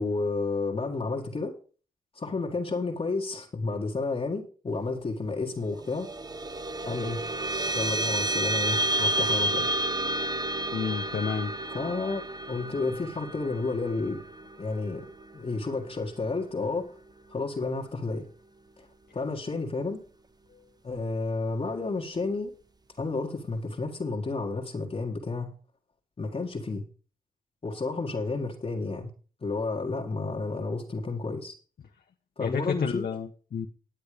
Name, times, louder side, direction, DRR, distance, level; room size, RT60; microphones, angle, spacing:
voice 1, 0.0-1.5 2.2-6.1 6.9-7.2 7.7-9.7 11.7-12.2 12.5-14.2 14.6-15.1 15.3-17.0 17.3-18.3 19.1-20.0 20.8-22.5 23.0-25.5 26.2-26.8 27.6-29.1 29.4-31.5 32.4-33.0, left 3 dB, 40° left, -1 dB, 1.8 m, -31 dB
sound 1, 5.7-16.5, right 1 dB, 25° right, 0.9 m, -31 dB
voice 2, 10.7-11.5 32.4-33.7, left 6 dB, 70° left, 3 dB, 1.0 m, -30 dB
10.5 x 8.6 x 5.0 m, 0.39 s
cardioid pair, 80°, 16 cm